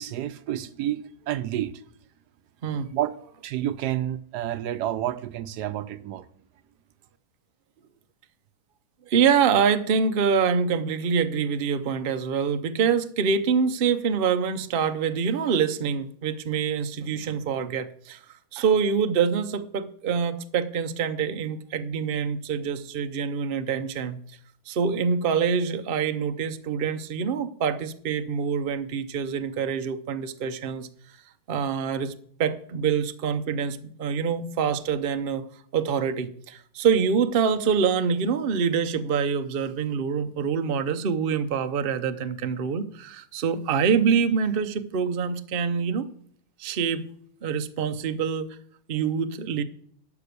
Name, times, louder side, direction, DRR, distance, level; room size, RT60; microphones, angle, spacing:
voice 1, 0.0-1.7 2.9-3.1 3.4-6.2, right 12 dB, 75° right, 1.2 m, -29 dB
voice 2, 9.1-18.2 18.5-24.2 24.7-30.9 31.5-32.1 32.4-35.4 35.7-46.1 46.6-47.1 47.4-48.5 48.9-49.6, right 6 dB, 55° right, 0.6 m, -25 dB
12.0 x 5.9 x 6.8 m
omnidirectional pair, 1.9 m